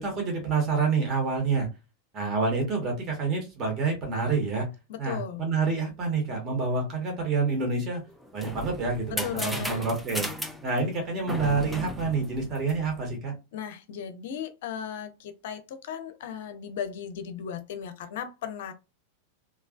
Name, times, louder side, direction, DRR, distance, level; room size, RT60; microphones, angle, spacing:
voice 1, 0.0-1.7 2.1-4.7 5.0-8.0 8.3-10.3 10.6-13.3, right 4 dB, 30° right, 1.3 m, -27 dB
voice 2, 4.9-5.4 9.1-9.9 13.5-18.7, left 8 dB, 55° left, 0.5 m, -36 dB
sound 1, 8.1-13.1, equal, ahead, 0.4 m, -36 dB
3.1 x 2.4 x 2.4 m
figure-of-eight pair, 90°, 0 cm